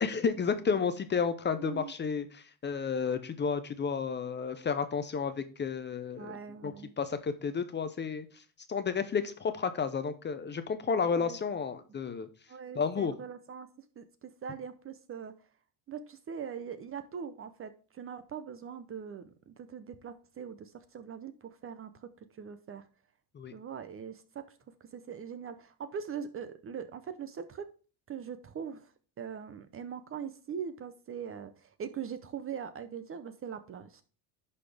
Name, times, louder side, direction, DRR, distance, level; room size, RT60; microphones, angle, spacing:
voice 1, 0.0-6.4 6.6-8.3 8.7-12.3 12.8-13.1 23.3-23.5, left 6 dB, 25° left, 11 dB, 0.6 m, -32 dB
voice 2, 1.6-1.9 6.2-6.9 11.1-11.4 12.5-13.7 14.0-15.3 15.9-22.1 22.3-22.9 23.5-27.6 28.1-28.9 29.2-34.0, right 7 dB, 30° right, 11 dB, 0.6 m, -42 dB
11.0 x 4.2 x 3.4 m, 0.39 s
supercardioid pair, 110°, 48 cm